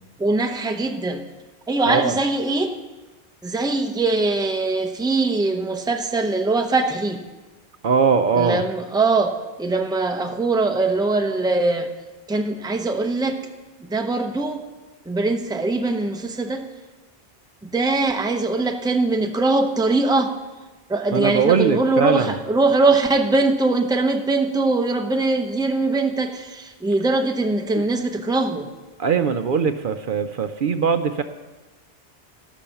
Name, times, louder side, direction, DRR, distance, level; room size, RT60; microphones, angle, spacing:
voice 1, 0.2-1.2 1.7-2.8 3.4-7.2 8.3-11.9 12.3-13.4 13.8-14.7 15.1-16.6 17.6-20.3 20.9-28.7, right 3 dB, 5° right, 4 dB, 0.7 m, -22 dB
voice 2, 7.8-8.6 21.1-22.3 27.7-27.8 29.0-31.2, right 6 dB, 60° right, 8 dB, 0.8 m, -20 dB
17.0 x 6.2 x 7.0 m, 1.2 s
omnidirectional pair, 1.1 m